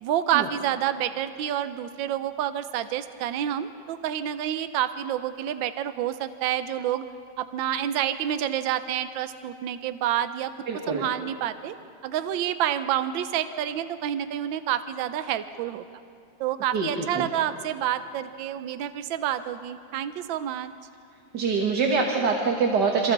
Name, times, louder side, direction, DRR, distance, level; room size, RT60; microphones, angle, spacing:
voice 1, 0.0-7.0 7.4-10.5 10.9-11.8 12.0-15.8 16.4-20.7, right 11 dB, 80° right, 11 dB, 1.4 m, -28 dB
voice 2, 10.7-11.1 16.7-17.3 21.3-23.1, right 4 dB, 60° right, 1 dB, 2.0 m, -24 dB
27.5 x 27.5 x 4.0 m, 2.5 s
omnidirectional pair, 2.1 m